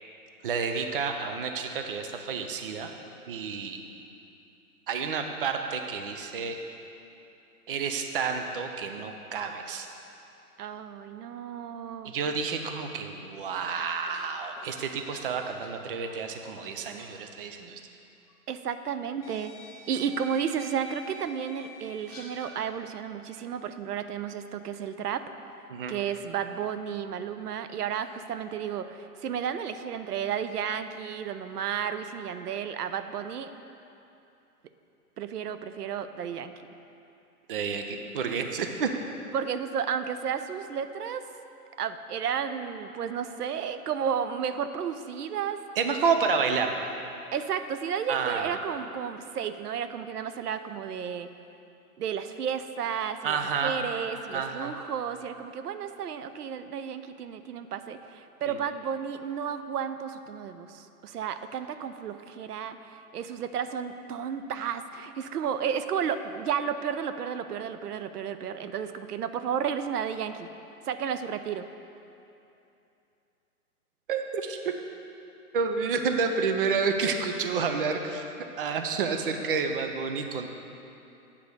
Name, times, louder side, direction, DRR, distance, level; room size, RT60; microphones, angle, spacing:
voice 1, 0.4-2.9 3.3-3.8 4.9-6.6 7.7-9.9 12.0-17.8 25.7-25.9 37.5-38.9 45.8-46.9 48.1-48.6 53.2-53.8 54.3-54.8 58.5-58.6 74.1-74.7 75.5-78.2 78.6-80.5, right 5 dB, 40° right, 5 dB, 0.5 m, -30 dB
voice 2, 10.6-12.1 18.5-19.5 19.9-25.2 25.9-33.5 35.2-36.5 39.3-41.2 41.8-45.6 47.3-51.3 52.0-70.5 70.8-71.7, right 8 dB, 90° right, 10 dB, 0.6 m, -32 dB
sound 1, 13.7-16.7 17.0-17.2 18.3-18.4 19.2-22.6, equal, 15° left, 0.8 m, -48 dB
8.3 x 5.0 x 6.7 m, 2.8 s
hypercardioid pair, 155°, 45 cm